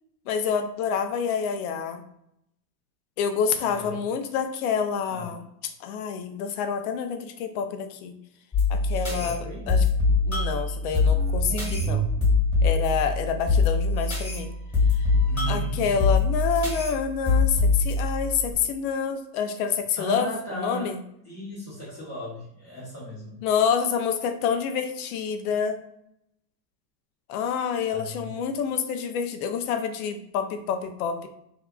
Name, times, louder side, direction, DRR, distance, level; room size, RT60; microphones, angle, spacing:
voice 1, 0.3-2.0 3.2-5.4 5.8-8.1 8.7-9.8 10.3-12.0 12.6-14.5 15.5-21.0 23.4-25.8 27.3-31.3, left 7 dB, 60° left, 7 dB, 0.5 m, -27 dB
voice 2, 3.6-4.0 5.1-5.3 8.9-9.7 15.3-16.1 20.0-20.9 21.2-23.4 27.9-28.3, equal, 30° left, -7 dB, 0.9 m, -36 dB
sound 1, 8.5-18.5, left 3 dB, 10° left, 1.3 m, -24 dB
2.6 x 2.3 x 2.2 m, 0.77 s
supercardioid pair, 120°, 50 cm